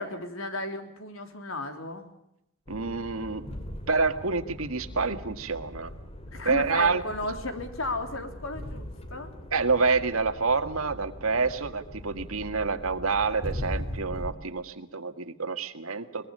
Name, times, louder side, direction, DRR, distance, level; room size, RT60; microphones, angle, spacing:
voice 1, 0.0-2.1 6.3-9.3, left 2 dB, 75° left, 6 dB, 3.6 m, -34 dB
sound 1, 2.7-14.3, equal, 30° left, 2.7 m, -40 dB
voice 2, 2.7-3.4 3.9-5.9 6.4-7.0 9.5-16.3, right 4 dB, 80° right, 9 dB, 1.8 m, -27 dB
23.0 x 21.5 x 6.6 m, 0.85 s
head